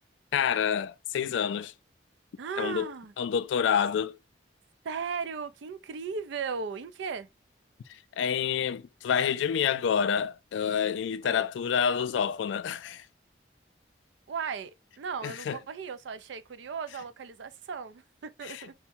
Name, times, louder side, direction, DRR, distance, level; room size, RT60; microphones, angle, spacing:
voice 1, 0.3-1.7 2.6-4.2 8.2-13.1 15.2-15.6 18.5-18.6, left 7 dB, 85° left, 0.3 m, -28 dB
voice 2, 2.4-3.1 4.8-7.3 11.2-11.5 14.3-18.7, right 5 dB, 80° right, 0.4 m, -36 dB
3.3 x 2.1 x 2.7 m
head